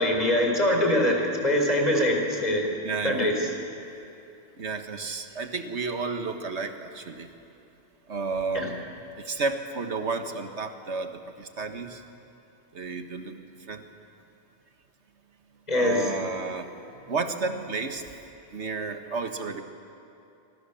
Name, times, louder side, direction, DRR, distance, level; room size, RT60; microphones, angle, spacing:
voice 1, 0.0-2.7 3.0-3.5 8.5-8.7 15.7-16.1, left 1 dB, 40° left, 1 dB, 4.5 m, -23 dB
voice 2, 2.8-3.3 4.6-7.3 8.1-8.8 9.2-12.0 12.7-13.4 13.7-13.8 15.7-16.7 17.1-18.0 18.5-19.6, right 4 dB, 85° right, 6 dB, 1.8 m, -32 dB
26.5 x 25.5 x 7.1 m, 2.7 s
omnidirectional pair, 1.1 m